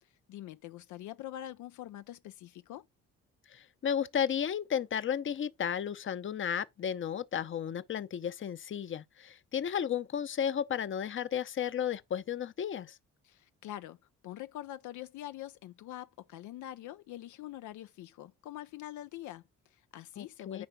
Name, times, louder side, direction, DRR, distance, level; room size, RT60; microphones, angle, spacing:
voice 1, 0.0-2.9 13.2-14.0 14.2-20.7, left 13 dB, 75° left, 0.5 m, -45 dB
voice 2, 3.5-13.0 20.2-20.7, left 8 dB, 40° left, 0.7 m, -33 dB
10.5 x 4.5 x 4.0 m
cardioid pair, 90°, 30 cm